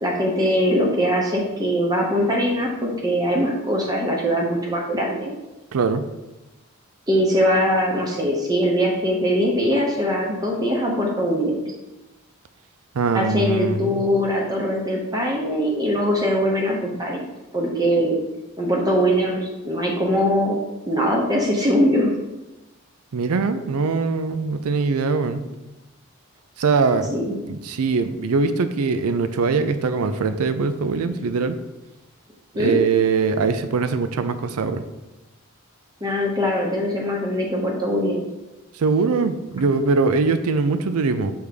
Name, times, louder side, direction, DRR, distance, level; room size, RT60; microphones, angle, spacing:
voice 1, 0.0-5.3 7.1-11.7 13.1-17.3 17.5-18.2 18.6-20.6 20.9-22.1 27.1-27.4 32.5-32.8 36.0-38.2, equal, 15° right, -2 dB, 0.8 m, -22 dB
voice 2, 5.7-6.1 12.9-14.0 23.1-25.4 26.6-27.1 27.5-31.6 32.6-34.8 38.7-41.3, right 4 dB, 85° right, 10 dB, 0.5 m, -22 dB
6.4 x 3.4 x 5.1 m, 1.0 s
head